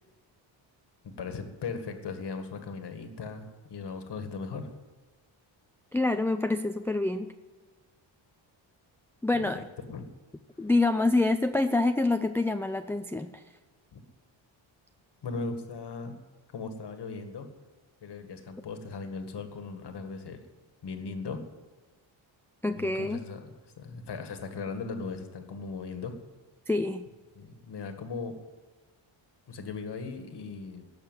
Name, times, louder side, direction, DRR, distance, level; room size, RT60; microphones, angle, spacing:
voice 1, 1.0-4.7 9.3-9.6 9.9-10.1 13.9-14.0 15.2-16.2 16.5-17.5 18.0-20.4 20.8-21.4 22.8-23.4 23.8-26.1 27.4-28.4 29.5-30.8, left 4 dB, 55° left, 7 dB, 1.9 m, -38 dB
voice 2, 5.9-7.3 9.2-9.6 10.6-13.4 22.6-23.2 26.7-27.0, left 2 dB, 5° left, 8 dB, 0.4 m, -26 dB
17.5 x 6.6 x 9.2 m, 1.3 s
cardioid pair, 110°, 47 cm